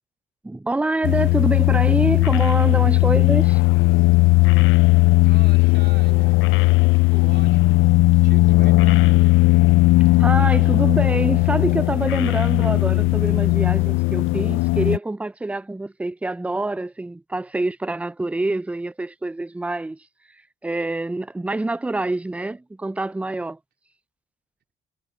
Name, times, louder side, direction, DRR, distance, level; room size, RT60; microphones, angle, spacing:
voice 1, 0.4-3.6 10.2-20.0 20.6-23.6, right 2 dB, 5° right, 0.4 m, -26 dB
sound 1, 1.0-15.0, left 21 dB, 90° left, 0.4 m, -17 dB
voice 2, 5.3-7.8 8.1-9.4, right 8 dB, 60° right, 3.6 m, -43 dB
cardioid pair, 90°, 20 cm